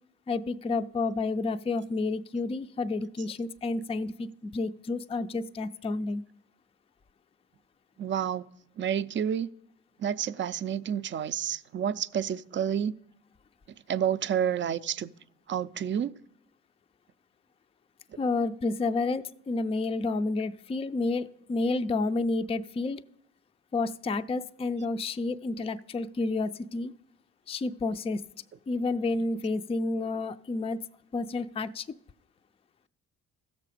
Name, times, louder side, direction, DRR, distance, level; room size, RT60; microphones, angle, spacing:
voice 1, 0.3-6.2 18.2-23.0 23.7-26.9 27.5-28.2 28.7-30.8 31.1-31.8, left 3 dB, 20° left, 0.4 m, -30 dB
voice 2, 8.0-8.4 8.8-9.5 10.0-12.9 13.9-15.1 15.5-16.1, right 9 dB, 40° right, 0.4 m, -29 dB
15.5 x 6.8 x 4.9 m
cardioid pair, 90°, 30 cm